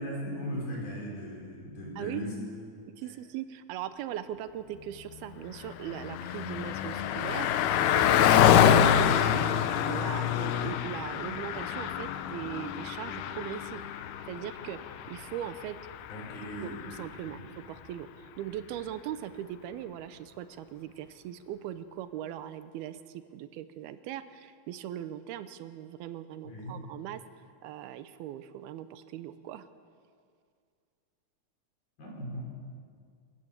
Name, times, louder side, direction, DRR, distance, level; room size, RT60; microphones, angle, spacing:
voice 1, 0.0-2.3 16.1-16.8 17.3-17.4 26.4-26.7 32.0-32.4, equal, 65° left, -2 dB, 6.6 m, -38 dB
voice 2, 3.0-13.8 14.3-15.8 16.6-27.2 27.6-29.7, right 11 dB, 85° right, 12 dB, 2.7 m, -40 dB
Car passing by, 5.4-17.2, left 9 dB, 90° left, 2.8 m, -26 dB
26.5 x 14.5 x 7.3 m, 2.2 s
omnidirectional pair, 4.5 m